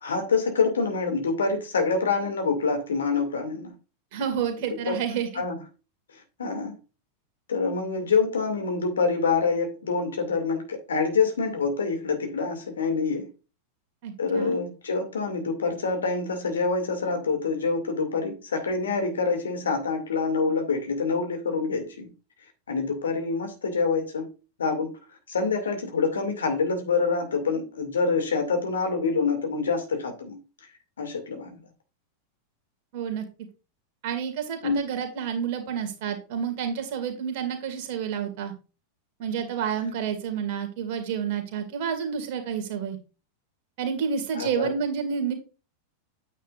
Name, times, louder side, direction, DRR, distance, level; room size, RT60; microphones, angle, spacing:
voice 1, 0.0-3.7 4.9-5.0 5.4-5.6 6.4-6.7 7.5-13.3 14.2-22.1 22.7-24.3 24.6-25.0 25.3-30.4 31.0-31.6 34.6-34.8 44.3-44.7, left 4 dB, 70° left, 2.3 m, -26 dB
voice 2, 4.1-5.4 14.0-14.6 32.9-33.2 34.0-38.5 39.2-43.0 43.8-45.3, right 7 dB, 50° right, 2.2 m, -29 dB
9.1 x 8.3 x 2.5 m
figure-of-eight pair, 90°, 0 cm